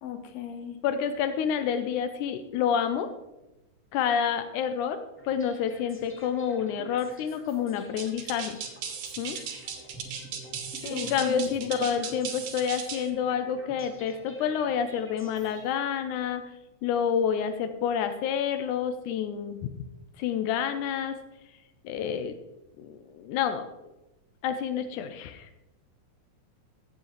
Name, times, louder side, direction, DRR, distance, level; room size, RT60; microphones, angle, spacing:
voice 1, 0.0-0.8 10.8-11.9, left 8 dB, 65° left, 6 dB, 2.1 m, -36 dB
voice 2, 0.8-3.1 3.9-5.0 5.3-8.6 9.2-9.4 10.9-16.4 16.8-19.6 20.2-21.2 21.8-22.4 22.8-23.6 24.4-25.5, left 7 dB, 90° left, 9 dB, 2.1 m, -28 dB
sound 1, 5.2-16.2, right 1 dB, 5° left, 1.0 m, -49 dB
sound 2, 8.0-13.1, right 7 dB, 85° right, 2.7 m, -37 dB
15.5 x 7.3 x 3.1 m, 0.96 s
omnidirectional pair, 3.6 m